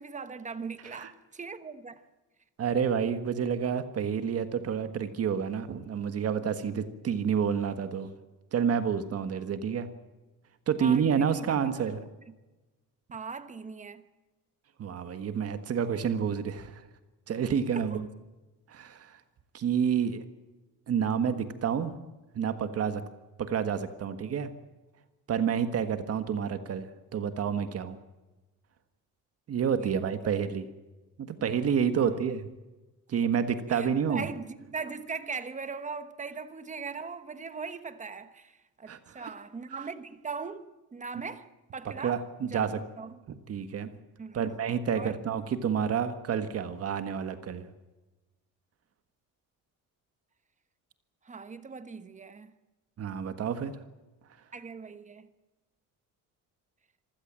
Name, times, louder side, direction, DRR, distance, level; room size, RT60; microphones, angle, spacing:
voice 1, 0.0-2.0 10.8-11.5 12.3-12.4 13.1-14.1 17.7-18.0 29.8-30.3 31.9-32.2 33.7-43.2 44.2-44.4 44.9-45.2 51.2-52.5 54.5-55.3, right 5 dB, 20° right, 1.2 m, -40 dB
voice 2, 2.6-8.1 8.5-9.9 10.7-12.0 14.8-16.8 17.3-18.1 18.7-19.2 19.5-20.2 20.9-22.0 22.3-23.0 23.4-24.5 25.3-28.0 29.5-30.7 31.2-32.5 33.1-34.3 38.9-39.3 42.0-42.8 43.5-43.9 44.3-47.6 53.0-53.7, right 7 dB, 45° right, 1.6 m, -29 dB
26.0 x 16.0 x 7.5 m
cardioid pair, 155°, 33 cm